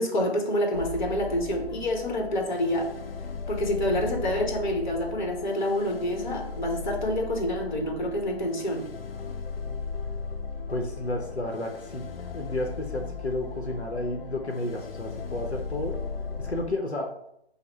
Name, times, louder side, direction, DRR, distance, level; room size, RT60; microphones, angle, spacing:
voice 1, 0.0-2.9 3.5-8.8, equal, 45° left, 1 dB, 1.2 m, -27 dB
sound 1, 0.7-16.7, left 5 dB, 60° left, 0.5 m, -37 dB
voice 2, 10.7-12.1 12.3-16.0 16.4-17.1, left 1 dB, 85° left, 2 dB, 0.9 m, -31 dB
5.3 x 2.2 x 4.3 m, 0.76 s
figure-of-eight pair, 140°, 32 cm